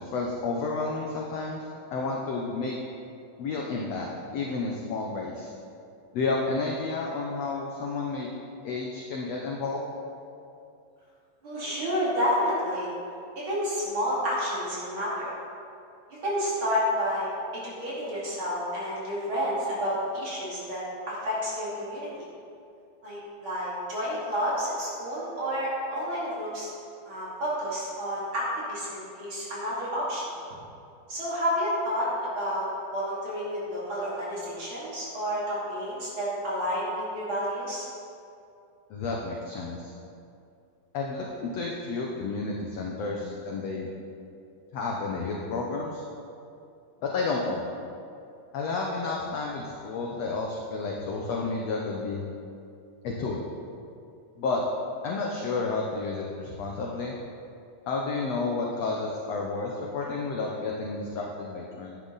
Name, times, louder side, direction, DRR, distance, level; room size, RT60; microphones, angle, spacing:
voice 1, 0.0-1.6 1.9-2.7 3.4-5.5 6.1-8.3 8.6-9.9 38.9-39.9 40.9-43.9 44.7-46.0 47.0-47.6 48.5-52.2 53.0-53.4 54.4-54.6 55.0-57.1 57.9-62.0, left 3 dB, 70° left, -1 dB, 1.6 m, -31 dB
voice 2, 11.4-12.9 13.4-15.3 16.2-22.1 23.0-26.7 27.0-30.2 31.1-32.7 32.9-37.9, equal, 40° right, -7 dB, 3.1 m, -30 dB
11.5 x 10.5 x 4.0 m, 2.6 s
omnidirectional pair, 4.0 m